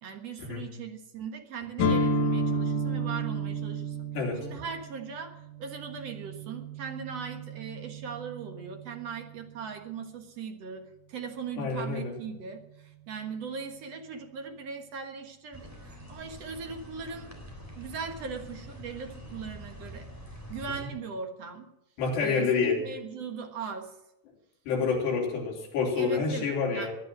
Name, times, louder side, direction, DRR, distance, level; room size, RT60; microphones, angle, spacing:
voice 1, 0.0-4.1 4.4-17.3 17.8-20.1 20.5-21.7 22.2-23.9 26.0-26.9, right 5 dB, 55° right, 5 dB, 1.9 m, -39 dB
sound 1, 1.8-9.6, right 1 dB, 55° left, 3.0 m, -32 dB
voice 2, 11.6-12.1 22.0-22.8 24.7-26.9, left 5 dB, 80° left, -1 dB, 5.7 m, -28 dB
sound 2, 15.5-20.8, equal, 5° right, 2.9 m, -45 dB
19.5 x 10.5 x 6.2 m, 0.90 s
omnidirectional pair, 4.8 m